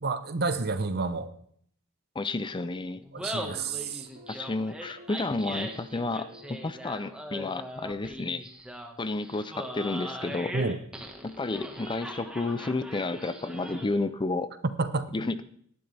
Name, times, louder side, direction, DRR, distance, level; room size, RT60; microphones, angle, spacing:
voice 1, 0.0-1.3 3.1-4.1 10.5-10.8 14.6-15.1, right 3 dB, 50° right, 0.9 m, -29 dB
voice 2, 2.1-3.0 4.3-8.5 9.0-10.5 11.2-14.5 15.1-15.4, left 3 dB, 20° left, 0.5 m, -31 dB
Laughter, 3.0-14.1, equal, 5° right, 1.6 m, -40 dB
sound 1, 3.3-7.8, left 1 dB, 65° right, 3.3 m, -52 dB
17.5 x 11.5 x 3.4 m
head